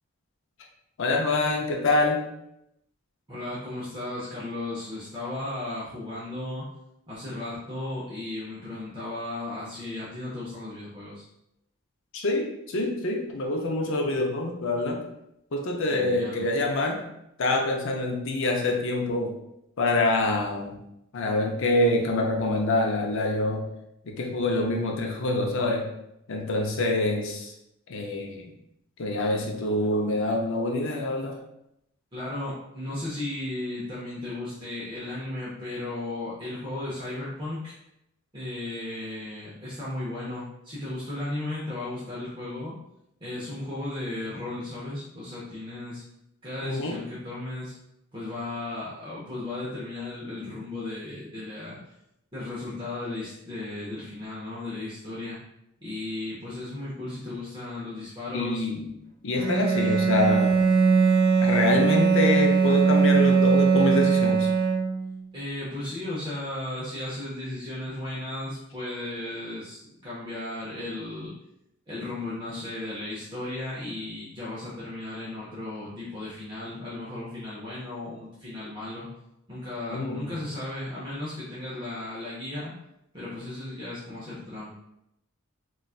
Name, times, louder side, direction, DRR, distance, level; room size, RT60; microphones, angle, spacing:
voice 1, 1.0-2.2 12.1-15.0 15.5-17.0 17.4-19.3 19.8-20.8 21.1-23.6 24.1-25.9 26.3-27.5 27.9-28.4 29.0-31.4 46.6-47.0 58.3-58.9 59.2-60.6 61.4-64.5 79.9-80.2, left 2 dB, 65° left, 1 dB, 0.5 m, -26 dB
voice 2, 3.3-6.6 7.1-11.2 15.9-16.5 32.1-37.7 38.3-42.7 43.2-46.0 46.4-47.7 48.1-51.8 52.3-55.4 55.8-58.7 65.3-71.3 71.9-79.1 79.5-82.7 83.1-84.7, left 2 dB, 25° right, -8 dB, 0.7 m, -35 dB
Bowed string instrument, 59.4-65.2, right 5 dB, 50° right, 1.1 m, -21 dB
4.0 x 2.3 x 2.4 m, 0.82 s
head